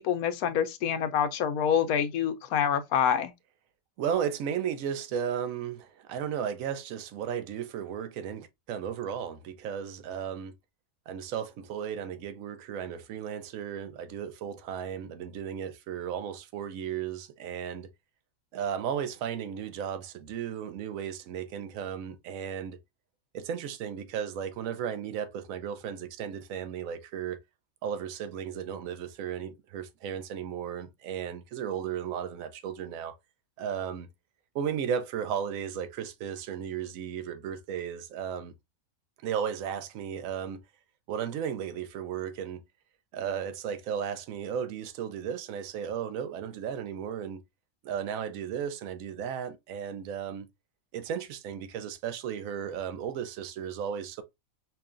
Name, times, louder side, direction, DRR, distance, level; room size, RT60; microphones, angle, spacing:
voice 1, 0.0-3.3, left 8 dB, 85° left, 1.1 m, -26 dB
voice 2, 4.0-10.5 11.1-17.9 18.5-22.8 23.3-27.4 27.8-33.2 33.6-34.1 34.5-38.5 39.2-40.6 41.1-42.6 43.1-47.4 47.8-50.5 50.9-54.2, right 8 dB, 70° right, 1.0 m, -35 dB
5.6 x 2.3 x 2.4 m
omnidirectional pair, 1.5 m